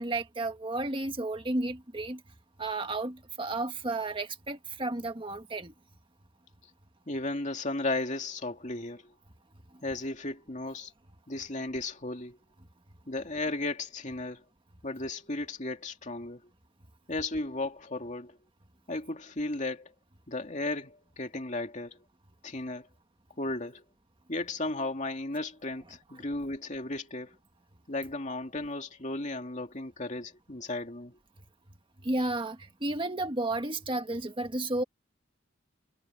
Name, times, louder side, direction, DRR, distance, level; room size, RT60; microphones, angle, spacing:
voice 1, 0.0-2.2 2.6-5.7 32.0-34.8, right 2 dB, 25° right, 1.6 m, -32 dB
voice 2, 7.1-9.1 9.8-10.9 11.3-12.4 13.1-14.4 14.8-16.4 17.1-18.4 18.9-19.9 20.3-22.0 22.4-22.9 23.4-23.8 24.3-27.3 27.9-31.2, left 2 dB, 40° left, 2.5 m, -35 dB
head